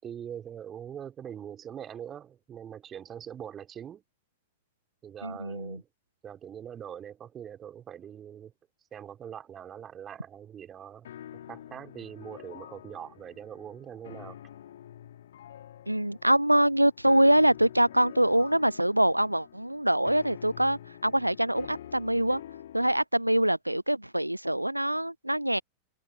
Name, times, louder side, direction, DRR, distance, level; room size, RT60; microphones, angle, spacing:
voice 1, 0.0-4.0 5.0-5.9 6.2-8.5 8.9-11.1 11.5-14.4, right 9 dB, 25° right, 4.4 m, -42 dB
voice 2, 5.2-5.8 15.9-22.4 22.7-25.6, right 1 dB, 90° right, 0.6 m, -24 dB
sound 1, 11.0-23.0, left 11 dB, 60° left, 1.9 m, -47 dB
figure-of-eight pair, 90°, 0 cm